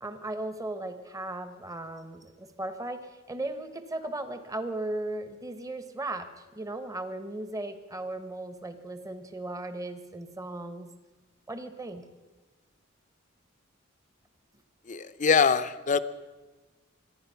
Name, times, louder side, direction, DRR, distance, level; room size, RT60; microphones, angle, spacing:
voice 1, 0.0-10.9 11.5-12.1, right 2 dB, 15° right, 10 dB, 1.1 m, -37 dB
voice 2, 14.9-16.0, left 5 dB, 40° left, 13 dB, 0.6 m, -23 dB
25.0 x 10.0 x 5.7 m, 1.3 s
head